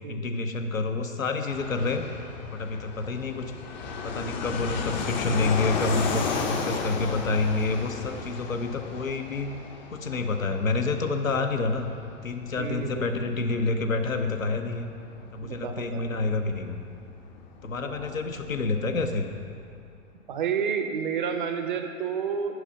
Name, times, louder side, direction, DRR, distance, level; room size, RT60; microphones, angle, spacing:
voice 1, 0.1-2.0 2.5-3.5 4.0-9.5 9.9-11.9 12.2-14.9 15.3-16.8 17.6-19.3, left 3 dB, 75° left, 6 dB, 0.8 m, -28 dB
Fixed-wing aircraft airplane, 1.5-19.8, left 5 dB, 35° left, 0.7 m, -35 dB
voice 2, 12.6-13.2 15.4-16.0 17.8-18.1 20.3-22.6, right 6 dB, 40° right, 6 dB, 0.6 m, -30 dB
8.0 x 5.7 x 5.4 m, 2.4 s
figure-of-eight pair, 110°, 40 cm